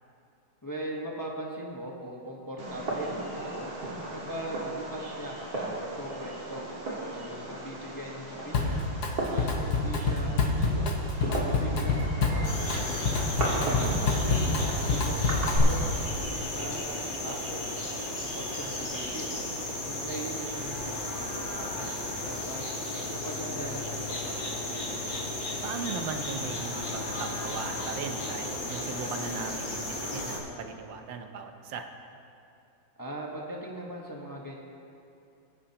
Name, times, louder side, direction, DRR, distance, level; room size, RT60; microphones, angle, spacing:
voice 1, 0.6-3.7 4.1-6.6 7.1-8.9 9.3-13.3 13.9-16.1 16.5-17.6 18.3-19.4 19.9-22.7 23.1-24.8 33.0-34.6, right 1 dB, 15° left, -2 dB, 0.9 m, -40 dB
Fireworks, 2.6-15.6, right 2 dB, 55° right, 2.2 m, -36 dB
Drum kit, 8.5-9.1 9.4-15.9, left 3 dB, 60° left, 1.5 m, -27 dB
sound 1, 12.4-30.4, left 1 dB, 80° left, 3.5 m, -34 dB
voice 2, 13.6-14.0 25.6-31.9, right 5 dB, 80° right, 6 dB, 1.5 m, -38 dB
21.0 x 9.9 x 2.9 m, 2.7 s
omnidirectional pair, 2.0 m